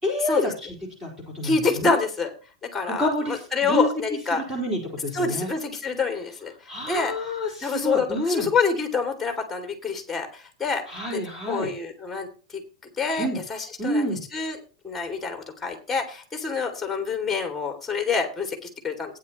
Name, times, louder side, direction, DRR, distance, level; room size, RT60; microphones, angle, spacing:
voice 1, 0.0-0.7 1.0-2.0 2.8-3.9 4.3-5.5 6.7-8.5 10.9-11.7 13.2-13.4 13.8-14.2, left 1 dB, 15° right, -1 dB, 4.2 m, -28 dB
voice 2, 1.4-2.3 2.6-4.4 5.1-7.1 7.6-10.8 11.5-12.6 13.0-14.0 14.3-14.6 14.8-19.2, left 4 dB, 5° left, 5 dB, 2.5 m, -27 dB
15.5 x 9.7 x 3.0 m, 0.35 s
supercardioid pair, 165°, 3 cm